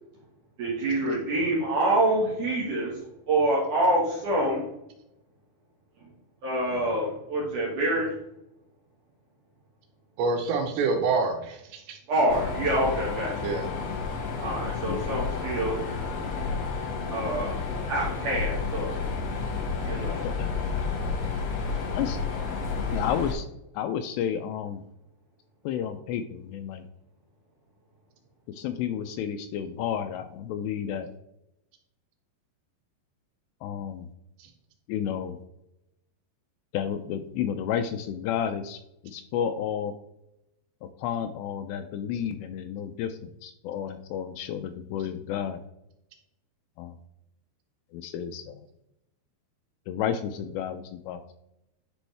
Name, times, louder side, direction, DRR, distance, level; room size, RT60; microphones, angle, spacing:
voice 1, 0.6-3.0 3.3-4.6 6.4-8.1 12.1-13.5 14.4-15.8 17.1-17.5 17.9-18.9 19.8-20.2 22.5-22.7, right 1 dB, 55° right, -4 dB, 2.7 m, -26 dB
voice 2, 10.2-12.0 13.4-13.6, right 4 dB, 75° right, 5 dB, 3.2 m, -26 dB
Mechanisms, 12.3-23.3, left 4 dB, 55° left, 1.9 m, -31 dB
voice 3, 21.7-22.2 22.9-23.5 23.7-24.8 25.7-26.9 28.5-31.1 33.6-34.1 34.9-35.4 36.7-39.9 41.0-45.6 46.8-47.0 47.9-48.7 49.9-51.4, left 9 dB, 80° left, 8 dB, 2.6 m, -31 dB
10.5 x 5.4 x 3.4 m, 0.84 s
omnidirectional pair, 5.2 m